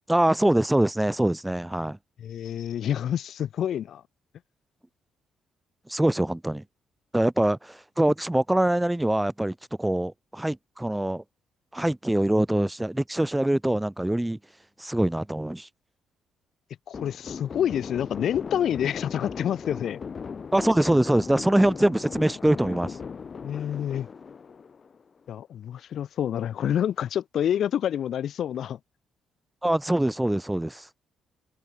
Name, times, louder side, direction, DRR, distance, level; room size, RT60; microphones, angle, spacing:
voice 1, 0.1-2.0 5.9-6.6 7.1-11.2 11.7-14.4 14.8-15.7 20.5-23.0 29.6-30.9, right 1 dB, 10° right, 1.3 m, -24 dB
voice 2, 2.2-4.0 16.9-20.0 23.4-24.1 25.3-28.8, left 10 dB, 65° left, 2.1 m, -28 dB
sound 1, 16.9-25.2, left 6 dB, 40° left, 2.9 m, -38 dB
open air
cardioid pair, 90°, 0 cm